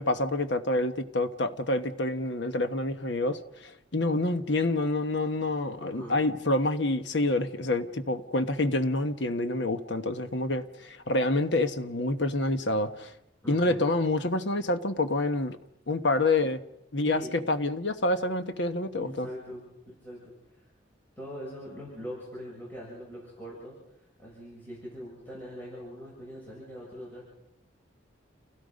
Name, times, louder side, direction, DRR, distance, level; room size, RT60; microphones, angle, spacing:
voice 1, 0.0-13.1 13.5-15.6 15.9-16.6 16.9-17.2 17.5-19.3, left 2 dB, 70° left, 1.3 m, -27 dB
voice 2, 5.8-6.2 13.4-13.8 17.0-17.3 18.9-19.6 20.0-20.3 21.2-23.8 24.2-27.3, equal, 10° left, 7.1 m, -42 dB
29.5 x 17.0 x 5.3 m
head